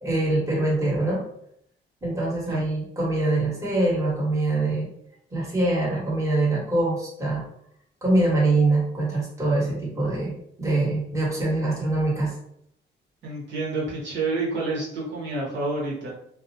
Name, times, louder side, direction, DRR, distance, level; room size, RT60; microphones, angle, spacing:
voice 1, 0.0-1.2 2.0-4.9 5.3-7.4 8.0-10.3 10.6-12.3, right 2 dB, 15° right, -5 dB, 1.2 m, -24 dB
voice 2, 13.2-16.1, right 3 dB, 65° right, -5 dB, 0.9 m, -28 dB
2.3 x 2.1 x 2.7 m, 0.72 s
cardioid pair, 90°, 20 cm